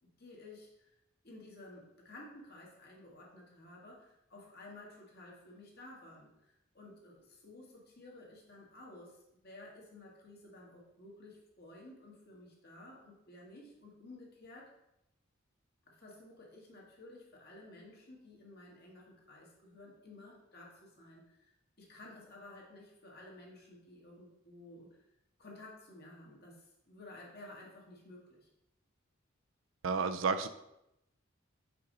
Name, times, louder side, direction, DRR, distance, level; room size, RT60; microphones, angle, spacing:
voice 1, 0.0-1.0 1.2-14.7 15.9-25.0 25.4-28.5, left 2 dB, 50° left, -2 dB, 1.7 m, -54 dB
voice 2, 29.8-30.5, right 5 dB, 70° right, 10 dB, 0.4 m, -31 dB
5.6 x 5.0 x 3.9 m, 0.85 s
head